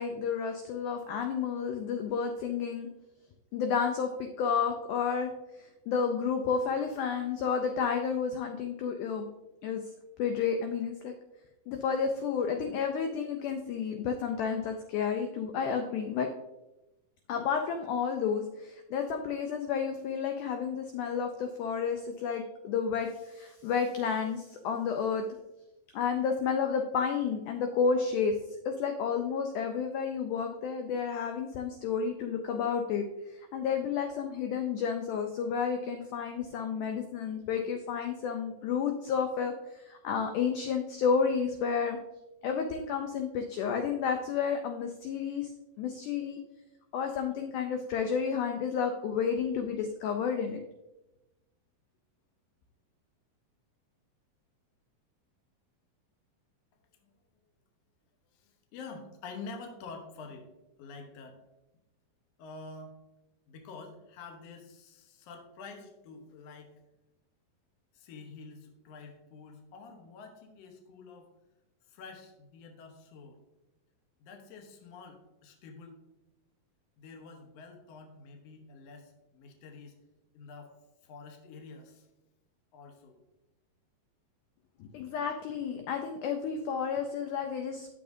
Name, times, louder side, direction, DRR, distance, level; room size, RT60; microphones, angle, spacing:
voice 1, 0.0-2.9 3.5-5.3 5.6-9.3 9.6-9.8 10.2-11.1 11.7-16.3 17.3-25.2 25.9-28.4 28.6-42.0 42.4-45.5 45.8-46.4 46.9-50.6 84.8-87.9, left 6 dB, 85° left, 5 dB, 1.8 m, -31 dB
voice 2, 58.3-60.5 60.8-61.4 62.4-62.9 63.5-66.7 67.9-71.3 71.9-73.4 74.2-76.0 77.0-79.9 80.3-80.7 81.0-82.1 82.7-83.2, left 4 dB, 70° left, 3 dB, 1.6 m, -48 dB
10.5 x 6.8 x 2.6 m, 0.97 s
omnidirectional pair, 4.2 m